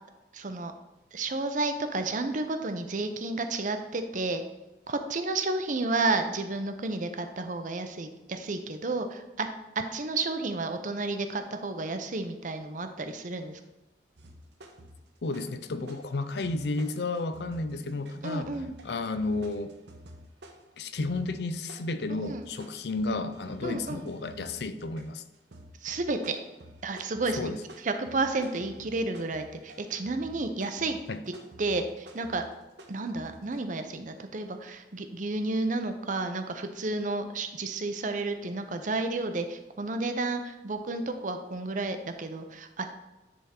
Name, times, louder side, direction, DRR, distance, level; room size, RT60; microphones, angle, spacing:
voice 1, 0.3-0.7 1.1-4.4 4.9-9.5 9.9-13.6 18.2-18.7 22.3-22.4 23.6-24.1 25.8-26.4 26.8-27.5 27.8-31.0 31.6-32.4 32.9-43.0, right 3 dB, 45° right, 7 dB, 0.6 m, -31 dB
sound 1, 14.2-15.6 15.9-33.6, equal, 70° right, 0.9 m, -51 dB
voice 2, 15.2-18.5 18.8-19.7 20.8-25.2 27.4-27.6 31.1-31.2, left 3 dB, 65° left, 11 dB, 0.5 m, -32 dB
10.0 x 3.6 x 4.4 m, 1.1 s
head